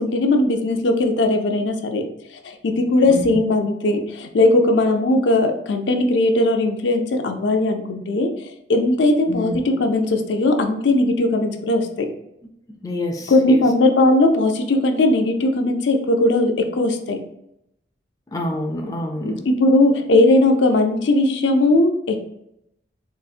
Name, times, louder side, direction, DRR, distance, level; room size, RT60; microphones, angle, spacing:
voice 1, 0.0-2.0 2.4-8.3 8.7-12.1 13.3-17.2 19.2-22.3, left 2 dB, 80° left, 5 dB, 0.5 m, -18 dB
voice 2, 3.0-3.4 9.3-9.6 12.8-13.6 18.3-19.4, left 1 dB, 20° left, 2 dB, 0.3 m, -27 dB
3.9 x 2.4 x 2.4 m, 0.79 s
head